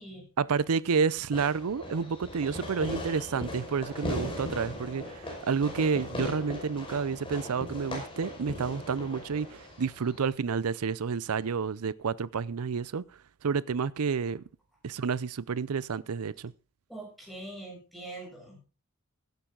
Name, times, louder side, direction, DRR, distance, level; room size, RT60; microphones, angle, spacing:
voice 1, 0.4-13.0 13.4-14.4 14.8-16.5, right 5 dB, 80° right, 0.5 m, -30 dB
Fireworks, 1.3-10.3, left 1 dB, 25° left, 5.3 m, -39 dB
voice 2, 16.9-18.6, right 2 dB, ahead, 7.2 m, -43 dB
16.5 x 10.5 x 3.8 m
head